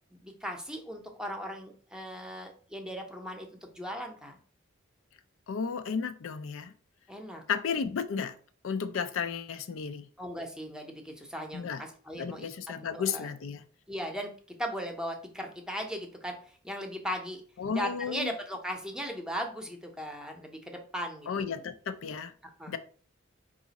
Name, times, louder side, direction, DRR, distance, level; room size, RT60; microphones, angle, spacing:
voice 1, 0.1-4.4 7.1-7.4 10.2-12.5 12.8-13.3 13.9-14.3 14.6-17.4 17.7-21.6 22.4-22.8, equal, 5° right, 3 dB, 0.7 m, -38 dB
voice 2, 5.5-6.7 7.5-8.4 8.6-10.1 11.5-11.8 12.1-13.6 17.6-18.3 21.3-22.3 22.7-22.8, left 6 dB, 80° left, 10 dB, 0.4 m, -33 dB
4.8 x 2.5 x 4.0 m, 0.43 s
head